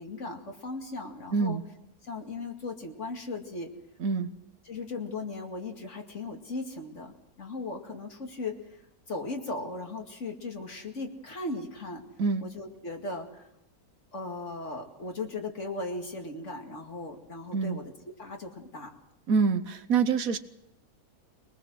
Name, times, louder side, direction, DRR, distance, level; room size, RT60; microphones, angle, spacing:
voice 1, 0.0-1.6 2.0-3.7 4.7-8.8 9.1-12.0 12.4-13.5 14.1-18.9, left 3 dB, 55° left, 3 dB, 2.7 m, -37 dB
voice 2, 1.3-1.6 4.0-4.3 12.2-12.5 17.5-17.8 19.3-20.4, right 5 dB, 70° right, 9 dB, 1.4 m, -26 dB
23.0 x 20.0 x 6.3 m, 0.86 s
omnidirectional pair, 1.6 m